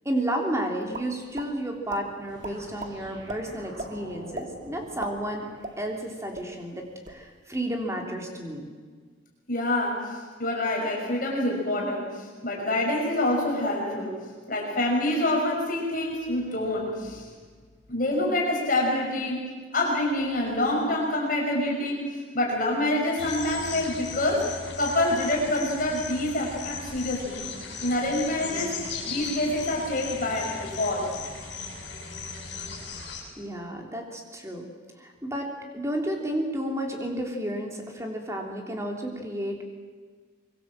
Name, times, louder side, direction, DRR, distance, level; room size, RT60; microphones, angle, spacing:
voice 1, 0.0-5.5 5.8-8.7 33.4-34.7 35.0-39.6, right 1 dB, 15° right, 2 dB, 3.4 m, -32 dB
sound 1, 0.9-1.5 1.9-2.0 2.4-2.9 3.3-3.4 3.8-3.9 4.3-4.5 4.9-6.1 6.3-6.5 6.9-7.2, right 2 dB, 40° right, 1.9 m, -36 dB
sound 2, 2.3-6.2, right 1 dB, 70° right, 6.9 m, -47 dB
voice 2, 9.5-14.2 14.5-17.2 17.9-19.4 19.7-22.1 22.3-24.5 24.8-27.4 27.8-28.7 29.1-31.1, left 1 dB, 45° left, -2 dB, 5.7 m, -26 dB
sound 3, 23.2-33.2, left 4 dB, 60° left, 6.8 m, -37 dB
25.0 x 22.5 x 7.7 m, 1.5 s
head